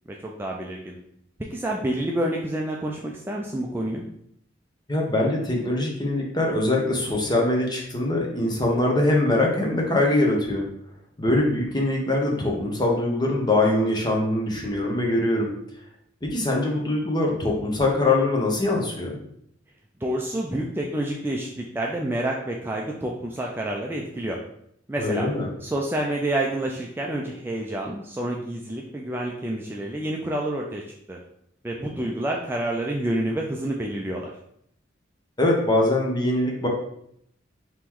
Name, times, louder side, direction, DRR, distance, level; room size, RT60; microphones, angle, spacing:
voice 1, 0.2-1.0 1.5-4.1 20.0-24.4 24.9-25.3 25.6-30.8 31.1-31.2 31.6-34.3, right 1 dB, 10° right, -1 dB, 0.3 m, -28 dB
voice 2, 4.9-10.7 11.2-15.5 16.2-19.2 25.0-25.5 35.4-36.7, left 2 dB, 20° left, -1 dB, 0.9 m, -23 dB
4.5 x 3.0 x 3.7 m, 0.72 s
head